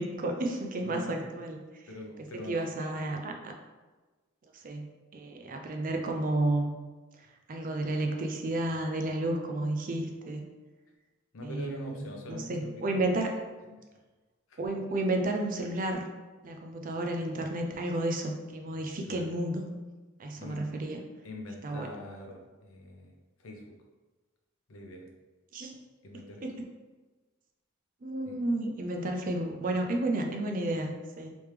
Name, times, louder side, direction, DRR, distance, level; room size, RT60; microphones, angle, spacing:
voice 1, 0.0-1.6 2.4-3.5 4.6-4.9 5.1-6.7 7.5-10.4 11.4-13.3 14.6-16.0 16.4-19.6 20.2-21.0 21.6-21.9 25.5-25.7 26.4-26.6 28.0-31.4, right 1 dB, 40° right, 3 dB, 0.5 m, -32 dB
voice 2, 0.8-1.3 1.9-2.7 11.3-12.8 13.7-13.8 14.5-14.6 19.1-19.3 20.4-20.6 21.2-23.1 23.4-23.7 24.7-25.1 26.0-26.4 28.3-28.4, left 1 dB, 80° left, 2 dB, 0.7 m, -43 dB
3.4 x 3.0 x 3.2 m, 1.2 s
head